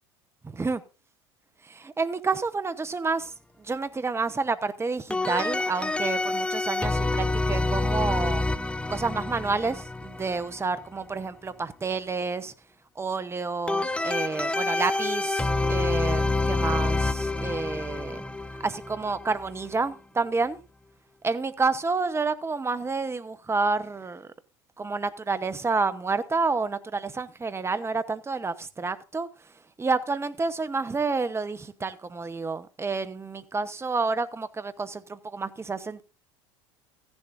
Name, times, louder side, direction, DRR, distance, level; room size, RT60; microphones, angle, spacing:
voice 1, 1.6-3.3 3.6-8.4 8.9-12.5 13.0-18.2 18.6-20.6 21.2-24.3 24.8-29.3 29.8-36.0, right 4 dB, 15° right, 1.0 m, -29 dB
sound 1, 5.1-10.7 13.7-19.8, left 2 dB, 5° left, 0.7 m, -27 dB
15.0 x 10.5 x 2.6 m
hypercardioid pair, 75°, 16 cm